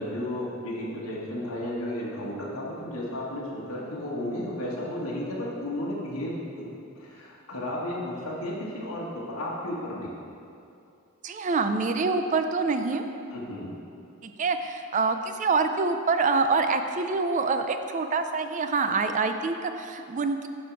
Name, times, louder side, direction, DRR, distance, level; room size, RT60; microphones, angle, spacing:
voice 1, 0.0-6.7 6.9-10.1 13.3-13.7, left 1 dB, 80° left, -5 dB, 1.4 m, -33 dB
voice 2, 11.2-13.0 14.2-20.5, right 4 dB, 35° right, 8 dB, 0.4 m, -26 dB
10.0 x 4.4 x 4.6 m, 2.6 s
head